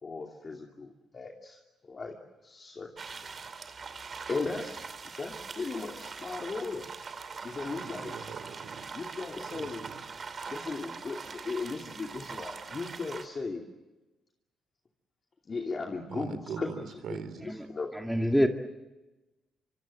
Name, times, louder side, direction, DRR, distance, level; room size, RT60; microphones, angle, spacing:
voice 1, 0.0-2.1 2.4-3.2 4.3-4.8 5.2-6.9 7.4-8.1 8.9-9.8 10.5-13.7 15.5-16.7 17.1-17.9, left 4 dB, 35° left, 1 dB, 2.6 m, -37 dB
sound 1, 3.0-13.3, right 5 dB, 40° right, 2.6 m, -42 dB
voice 2, 7.6-8.9 9.5-10.0 16.1-17.7, right 6 dB, 70° right, 12 dB, 2.8 m, -42 dB
voice 3, 17.9-18.5, equal, ahead, 4 dB, 2.1 m, -26 dB
25.5 x 24.5 x 7.7 m, 1.1 s
cardioid pair, 90°, 0 cm